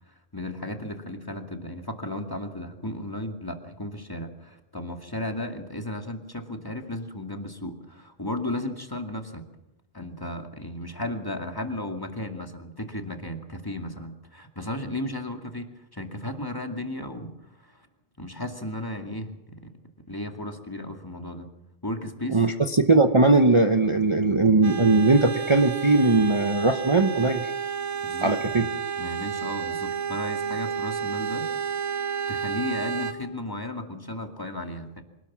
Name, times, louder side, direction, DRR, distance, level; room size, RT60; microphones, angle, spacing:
voice 1, 0.1-9.5 9.9-17.9 18.2-19.7 20.1-21.5 21.8-22.4 28.0-28.7 29.0-31.7 32.3-35.0, left 1 dB, 20° left, 5 dB, 2.3 m, -35 dB
voice 2, 22.3-27.5 28.2-28.6, right 3 dB, 25° right, 6 dB, 1.0 m, -20 dB
sound 1, 24.6-33.1, right 7 dB, 80° right, 2.1 m, -31 dB
25.5 x 19.0 x 7.4 m, 0.88 s
omnidirectional pair, 1.2 m